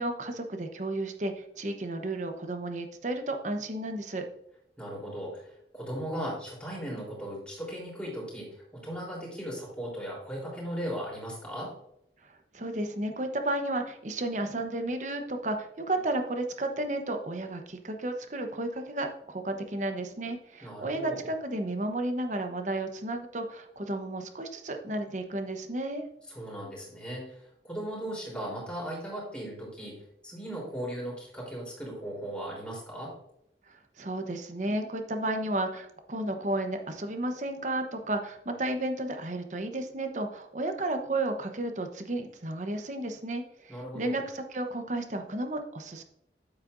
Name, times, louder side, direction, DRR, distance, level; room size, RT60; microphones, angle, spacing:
voice 1, 0.0-4.3 12.5-26.0 33.7-46.0, right 1 dB, 40° right, 6 dB, 0.9 m, -33 dB
voice 2, 4.8-11.7 20.6-21.2 26.3-30.0 30.2-33.1 43.7-44.2, equal, 5° left, -5 dB, 3.6 m, -37 dB
9.0 x 8.4 x 2.6 m, 0.75 s
head